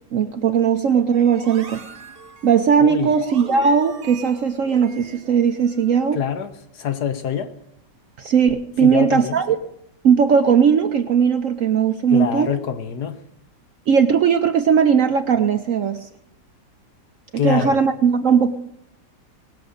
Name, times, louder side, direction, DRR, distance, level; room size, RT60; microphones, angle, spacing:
voice 1, 0.1-1.8 2.4-6.2 8.2-9.6 10.0-12.5 13.9-16.1 17.4-18.6, right 7 dB, 60° right, 0.9 m, -18 dB
sound 1, 1.1-6.0, right 5 dB, 40° right, 1.1 m, -41 dB
voice 2, 2.8-3.1 6.1-7.5 8.8-9.4 12.1-13.2 17.4-17.8, left 8 dB, 65° left, 1.5 m, -25 dB
19.0 x 7.0 x 6.6 m
omnidirectional pair, 1.9 m